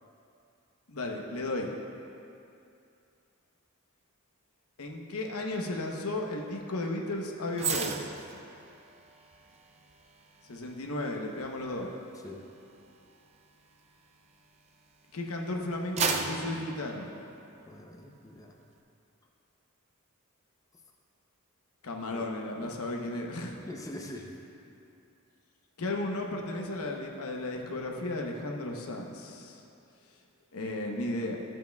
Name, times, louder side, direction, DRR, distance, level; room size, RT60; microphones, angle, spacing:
voice 1, 0.9-1.7 4.8-8.2 10.4-11.9 15.1-17.1 21.8-23.6 25.8-29.6 30.5-31.4, left 2 dB, 85° left, 1 dB, 0.8 m, -34 dB
sound 1, 7.5-15.0 15.4-17.8 18.2-18.4, right 5 dB, 30° right, 0.4 m, -37 dB
voice 2, 17.7-18.5 22.0-22.3 22.6-22.7 23.6-24.5, left 1 dB, 15° left, 0 dB, 0.5 m, -44 dB
13.0 x 7.5 x 2.3 m, 2.6 s
head